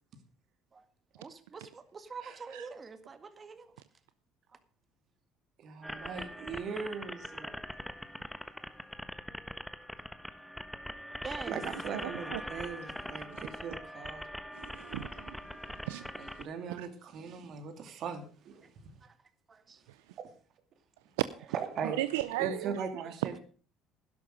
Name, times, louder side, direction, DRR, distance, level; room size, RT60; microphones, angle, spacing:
voice 1, 1.2-3.7 11.2-11.6 19.0-19.1 19.5-19.8, right 5 dB, 35° right, 1.9 m, -45 dB
voice 2, 5.6-7.6 11.5-14.5 16.1-18.7 21.5-22.0 22.4-23.4, right 6 dB, 55° right, 2.7 m, -39 dB
sound 1, 5.8-16.4, equal, 5° left, 1.2 m, -42 dB
voice 3, 12.0-12.4 13.3-13.4 14.5-15.4 15.9-16.4 16.8-16.9 21.8-22.8 23.2-23.4, right 15 dB, 85° right, 0.5 m, -36 dB
11.5 x 11.5 x 5.1 m
hypercardioid pair, 70°, 0 cm